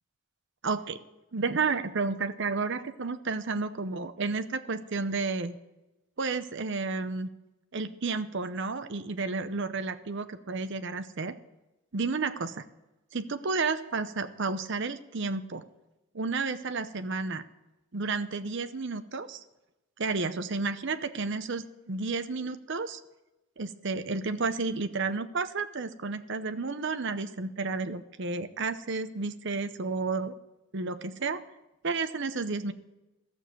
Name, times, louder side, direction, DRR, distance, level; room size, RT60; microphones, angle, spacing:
voice 1, 0.6-1.0 1.3-5.6 6.2-7.3 7.7-11.3 11.9-12.6 13.1-15.6 16.1-17.4 17.9-19.4 20.0-23.0 23.6-30.3 30.7-31.4 31.8-32.7, right 4 dB, 55° right, 10 dB, 0.7 m, -31 dB
13.5 x 7.0 x 7.7 m, 0.97 s
head